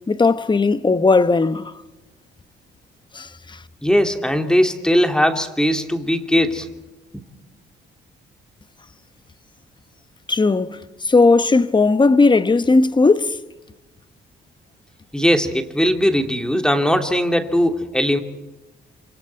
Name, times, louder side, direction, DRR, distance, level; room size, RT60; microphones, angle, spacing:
voice 1, 0.1-1.7 3.1-3.6 10.3-13.4, left 3 dB, 25° left, 1.1 m, -17 dB
voice 2, 3.8-6.7 7.1-7.2 15.1-18.2, equal, 5° left, 2.6 m, -19 dB
28.0 x 27.0 x 4.6 m
cardioid pair, 90°, 20 cm